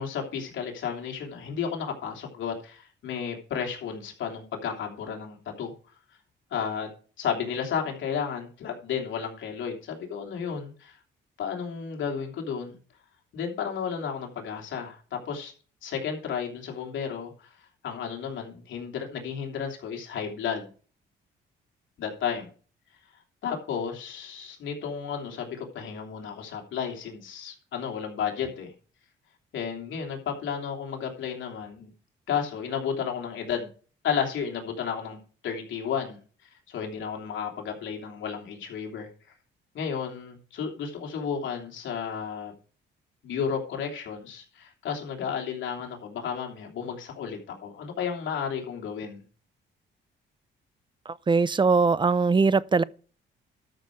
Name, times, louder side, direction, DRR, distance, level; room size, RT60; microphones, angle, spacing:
voice 1, 0.0-5.7 6.5-6.9 7.2-11.0 11.4-12.8 13.3-15.5 15.8-17.5 17.8-20.7 22.0-22.5 23.4-28.7 29.5-31.9 32.3-33.7 34.0-35.2 35.4-36.2 36.7-39.1 39.7-42.5 43.2-49.2, left 7 dB, 75° left, 3.1 m, -32 dB
voice 2, 51.1-52.8, right 4 dB, 25° right, 0.5 m, -21 dB
12.5 x 6.4 x 4.7 m
cardioid pair, 90°, 20 cm